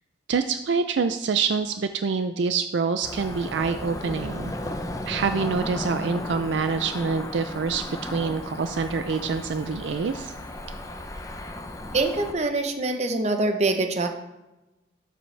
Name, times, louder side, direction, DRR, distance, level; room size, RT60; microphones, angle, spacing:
voice 1, 0.3-4.5 5.1-10.3, right 5 dB, 65° right, 9 dB, 0.4 m, -26 dB
Cricket / Motor vehicle (road), 3.0-12.3, left 1 dB, 15° left, 0.6 m, -35 dB
voice 2, 11.9-14.1, right 2 dB, 35° right, 6 dB, 0.8 m, -24 dB
11.5 x 7.7 x 3.3 m, 1.0 s
head